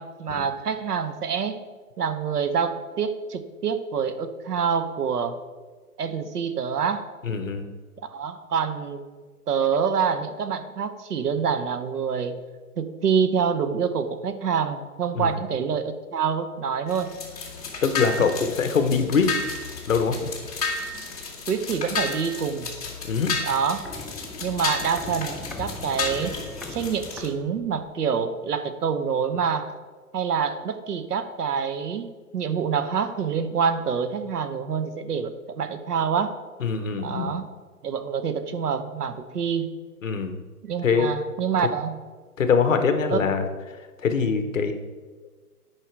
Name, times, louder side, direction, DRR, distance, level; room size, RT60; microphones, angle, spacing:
voice 1, 0.0-1.6 2.0-5.4 6.0-7.1 8.1-9.0 9.5-12.4 12.8-17.2 18.0-18.2 21.5-22.7 23.4-23.9 24.4-26.3 26.7-29.7 30.1-36.4 37.0-37.5 37.8-39.7 40.6-42.0 43.1-43.2, right 6 dB, 75° right, 10 dB, 1.0 m, -26 dB
voice 2, 7.2-7.7 15.2-15.3 17.8-19.3 19.9-20.3 23.1-23.3 36.6-37.3 40.0-40.4 40.8-41.1 42.4-43.5 44.0-44.7, left 5 dB, 55° left, 8 dB, 1.0 m, -23 dB
sound 1, 16.9-27.3, left 4 dB, 25° left, 1.1 m, -32 dB
Walk footsteps, 23.5-28.0 28.2-28.3, left 3 dB, ahead, 0.3 m, -40 dB
9.9 x 5.0 x 4.6 m, 1.4 s
hypercardioid pair, 180°, 47 cm